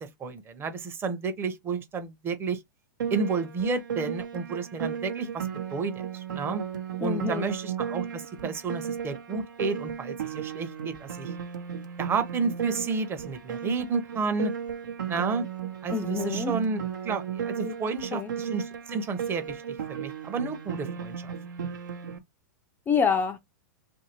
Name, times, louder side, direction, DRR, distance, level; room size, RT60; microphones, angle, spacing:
voice 1, 0.0-2.6 3.1-6.6 7.0-11.3 12.0-14.5 15.1-15.5 15.8-21.3, right 4 dB, 20° right, 0.7 m, -31 dB
Piano, 3.0-22.2, right 8 dB, 85° right, 0.9 m, -35 dB
voice 2, 7.0-7.5 15.9-16.6 17.6-17.8 18.1-18.3 22.9-23.4, left 6 dB, 20° left, 0.4 m, -27 dB
2.8 x 2.7 x 2.9 m
hypercardioid pair, 125°, 10 cm